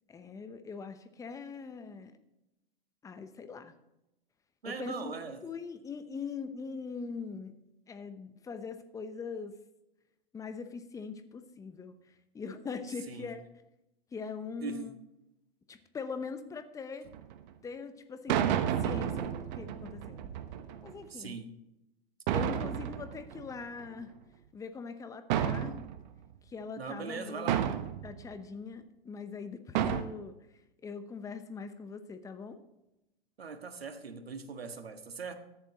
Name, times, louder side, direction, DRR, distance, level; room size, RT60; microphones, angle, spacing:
voice 1, 0.1-2.2 3.0-3.7 4.6-5.1 5.4-7.6 7.9-9.5 10.3-13.4 14.1-14.9 15.7-17.1 17.6-18.4 18.8-20.3 20.8-21.4 22.3-24.1 24.5-25.8 26.4-27.7 28.0-30.4 30.8-32.6, left 5 dB, 10° left, 0.8 m, -42 dB
voice 2, 4.6-5.4 13.1-13.3 14.6-15.0 21.1-21.5 26.8-27.7 33.4-35.3, right 5 dB, 80° right, 1.6 m, -40 dB
sound 1, 17.1-17.3 18.3-20.9 22.3-24.0 25.3-26.3 27.5-28.2 29.7-30.0, right 10 dB, 45° right, 1.1 m, -31 dB
14.0 x 10.5 x 3.0 m
hypercardioid pair, 110°, 30 cm